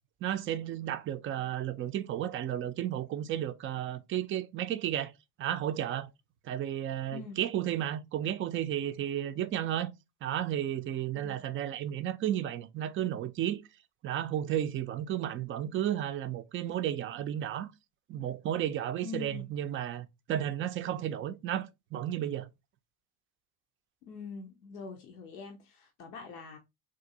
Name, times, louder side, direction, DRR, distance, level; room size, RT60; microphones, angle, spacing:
voice 1, 0.2-5.1 5.4-6.1 6.4-9.9 10.2-13.6 14.0-17.7 18.1-22.5, right 11 dB, 30° right, 0.3 m, -33 dB
voice 2, 19.0-19.4 24.0-26.6, left 5 dB, 85° left, 0.7 m, -44 dB
3.8 x 2.5 x 2.6 m
hypercardioid pair, 65°, 45 cm